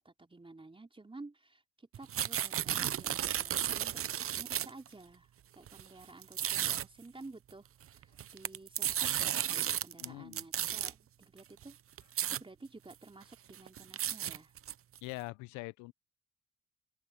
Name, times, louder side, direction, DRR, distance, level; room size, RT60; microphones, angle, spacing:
voice 1, 0.0-4.0 4.3-5.3 5.6-11.8 12.3-14.5, right 2 dB, 20° right, 4.0 m, -52 dB
sound 1, 1.9-4.9 5.7-5.8 6.2-6.9 8.0-10.0 10.3-10.9 11.6-11.7 12.0-12.4 12.9-13.0 13.3-15.0, right 10 dB, 50° right, 0.9 m, -33 dB
voice 2, 10.0-10.5 15.0-15.9, left 23 dB, 80° left, 1.0 m, -43 dB
open air
hypercardioid pair, 55°, 30 cm